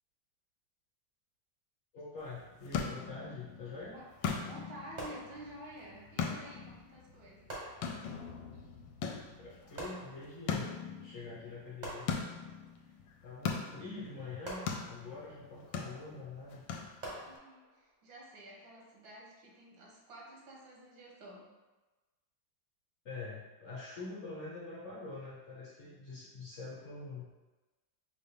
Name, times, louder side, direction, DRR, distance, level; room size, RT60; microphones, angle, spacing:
voice 1, 1.9-4.0 9.4-10.7 11.0-12.3 13.2-16.6 23.0-27.3, left 3 dB, 50° left, -7 dB, 0.9 m, -45 dB
sound 1, 2.2-17.4, left 6 dB, 80° left, 1.3 m, -41 dB
voice 2, 4.4-7.5 17.2-21.5, right 1 dB, 80° right, -2 dB, 1.7 m, -51 dB
sound 2, 5.0-5.9 7.5-8.4 9.8-10.6 11.8-12.7 14.4-15.4 17.0-17.9, right 1 dB, 35° right, 0.7 m, -46 dB
5.3 x 2.5 x 3.5 m, 1.2 s
omnidirectional pair, 2.1 m